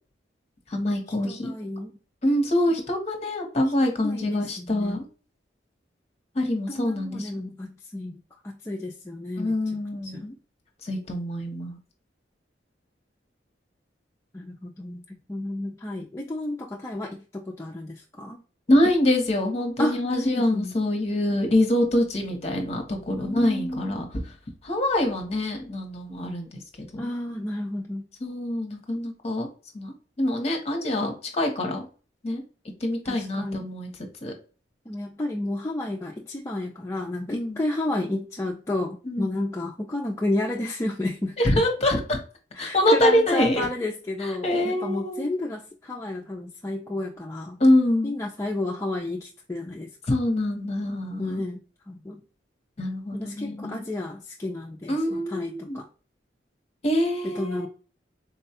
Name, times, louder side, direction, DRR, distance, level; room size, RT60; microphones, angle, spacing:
voice 1, 0.7-1.5 2.2-5.0 6.3-7.4 9.4-10.3 10.8-11.8 18.7-24.2 24.6-27.1 28.2-29.5 29.7-31.8 32.2-32.4 32.8-33.9 34.2-34.3 37.3-37.6 39.1-39.3 41.4-42.2 42.6-43.7 44.2-45.2 47.6-48.1 50.1-51.4 52.8-53.8 54.9-55.8 56.8-57.7, left 1 dB, 35° left, 4 dB, 0.8 m, -25 dB
voice 2, 1.2-1.9 4.0-5.0 6.7-8.2 8.4-9.5 10.0-10.3 14.3-18.4 19.8-20.8 23.2-24.0 27.0-28.1 33.1-33.7 34.9-41.6 42.6-47.6 48.0-49.9 51.2-51.6 51.9-52.2 53.1-55.9 57.3-57.7, left 1 dB, 15° left, -1 dB, 0.3 m, -31 dB
4.0 x 2.2 x 2.7 m, 0.37 s
head